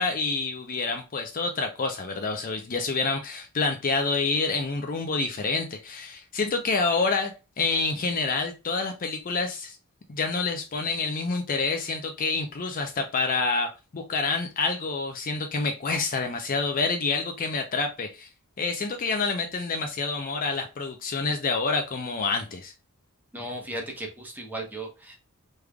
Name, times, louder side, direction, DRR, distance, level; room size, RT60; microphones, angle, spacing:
voice 1, 0.0-9.8 10.1-18.3 18.6-22.7, left 4 dB, 40° left, 5 dB, 0.5 m, -28 dB
voice 2, 23.3-25.2, right 1 dB, 10° right, 1 dB, 0.9 m, -36 dB
3.5 x 3.3 x 2.2 m, 0.29 s
head